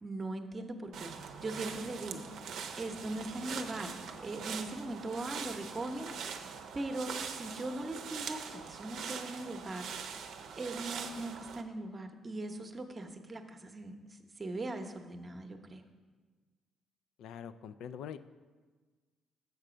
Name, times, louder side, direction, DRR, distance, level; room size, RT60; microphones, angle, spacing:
voice 1, 0.0-1.1 1.4-2.2 2.8-3.9 4.2-6.5 6.7-9.9 10.6-15.8, right 2 dB, 30° right, 5 dB, 0.8 m, -40 dB
sound 1, 0.9-11.6, right 6 dB, 75° right, 0.6 m, -43 dB
voice 2, 17.2-18.2, left 8 dB, 80° left, 12 dB, 0.3 m, -44 dB
6.6 x 6.5 x 5.0 m, 1.4 s
cardioid pair, 90°, 0 cm